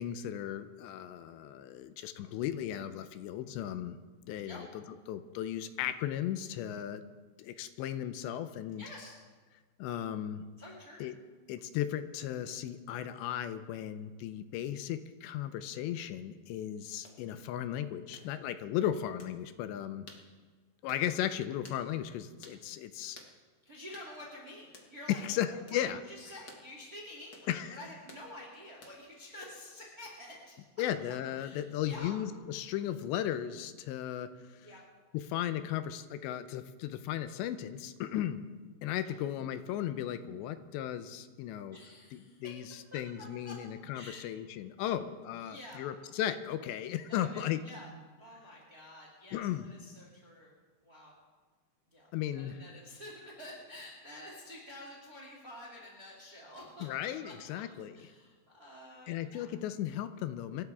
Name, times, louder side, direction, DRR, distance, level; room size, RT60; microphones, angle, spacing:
voice 1, 0.0-4.0 4.3-4.7 5.1-7.0 7.4-8.8 9.8-10.4 11.0-11.1 11.5-20.1 20.8-23.2 25.1-26.0 27.5-27.8 30.8-34.7 35.1-38.4 38.8-41.8 42.4-47.6 49.3-49.7 52.1-52.6 56.8-58.0 59.1-60.6, left 11 dB, 85° left, 10 dB, 2.9 m, -36 dB
voice 2, 8.8-9.1 10.6-11.1 23.6-25.6 26.0-30.6 31.4-32.2 34.6-34.8 39.0-39.1 41.7-42.6 42.9-43.0 43.4-43.6 43.9-44.2 44.8-44.9 45.4-45.8 47.1-47.9 48.2-50.5 50.8-51.1 51.9-56.9 57.2-57.6 57.9-59.5, left 1 dB, 25° right, -2 dB, 2.5 m, -49 dB
sound 1, 17.0-17.2 18.1-18.3 19.2-19.4 20.1-20.3 20.9-21.1 21.6-21.8 22.4-22.6 23.1-23.3 23.9-24.1 24.7-24.9 25.7-25.8 26.5-26.7 27.3-27.5 28.1-28.3 28.8-29.1, left 3 dB, 65° left, 1.0 m, -53 dB
25.5 x 13.0 x 3.6 m, 1.4 s
omnidirectional pair, 5.2 m